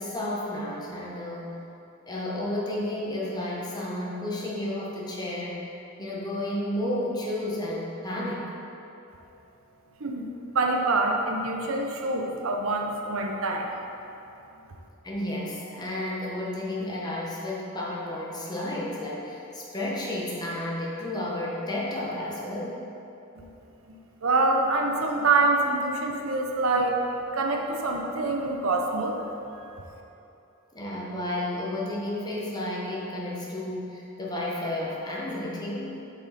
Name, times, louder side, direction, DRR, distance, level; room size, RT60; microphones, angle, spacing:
voice 1, 0.0-1.5 2.1-5.7 6.0-8.5 15.0-22.8 30.7-36.1, left 1 dB, 20° left, -4 dB, 1.0 m, -32 dB
voice 2, 10.5-13.7 23.9-27.0 27.3-29.2, right 3 dB, 80° right, 1 dB, 0.7 m, -25 dB
7.2 x 5.5 x 4.1 m, 2.9 s
head